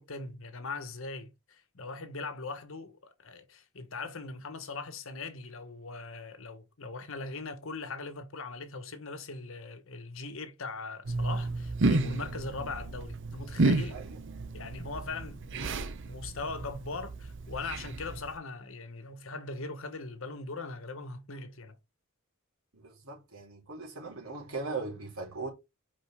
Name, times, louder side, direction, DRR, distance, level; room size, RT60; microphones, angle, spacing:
voice 1, 0.0-14.0 14.5-21.8, left 3 dB, 70° left, 1.2 m, -40 dB
sound 1, 11.0-18.4, right 2 dB, 60° right, 0.8 m, -32 dB
voice 2, 22.7-25.5, right 3 dB, 90° right, 3.1 m, -39 dB
5.2 x 5.1 x 3.6 m
head